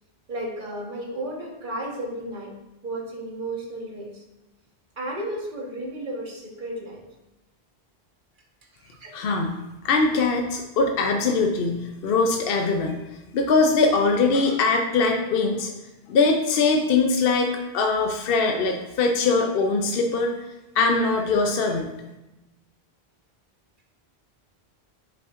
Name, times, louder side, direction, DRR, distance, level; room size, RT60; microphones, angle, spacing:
voice 1, 0.3-2.5 2.8-4.2 5.0-7.0 8.8-9.2, right 1 dB, 50° right, -1 dB, 1.3 m, -33 dB
voice 2, 9.1-9.6 9.8-13.0 13.3-15.7 16.1-20.3 20.7-21.9, left 3 dB, 65° left, 3 dB, 0.8 m, -22 dB
7.5 x 5.6 x 2.4 m, 1.0 s
omnidirectional pair, 1.1 m